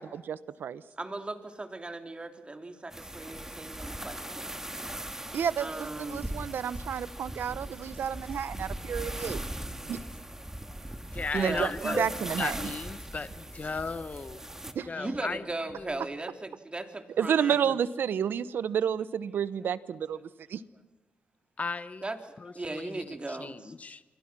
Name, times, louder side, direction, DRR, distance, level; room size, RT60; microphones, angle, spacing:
voice 1, 0.0-0.8 5.3-5.7 6.0-9.4 9.9-10.0 11.3-12.7 14.7-14.9 17.2-20.6, right 8 dB, 80° right, 16 dB, 0.9 m, -30 dB
voice 2, 0.9-4.5 5.6-6.2 9.1-9.3 9.6-9.8 10.6-10.9 11.3-12.0 14.9-17.8 22.0-22.2 22.4-23.7, right 2 dB, 30° right, 6 dB, 3.3 m, -38 dB
Evening beach sounds, 2.9-14.7, right 1 dB, 15° right, 2.2 m, -39 dB
voice 3, 11.1-12.1 12.4-14.4 14.9-15.4 15.7-15.9 17.5-17.6 21.6-22.0 22.4-24.0, left 4 dB, 45° left, 13 dB, 1.1 m, -36 dB
footsteps stairs fast, 12.8-15.4 15.7-16.0, right 3 dB, 50° right, 5.2 m, -55 dB
29.0 x 24.5 x 6.1 m, 1.1 s
cardioid pair, 55°, 4 cm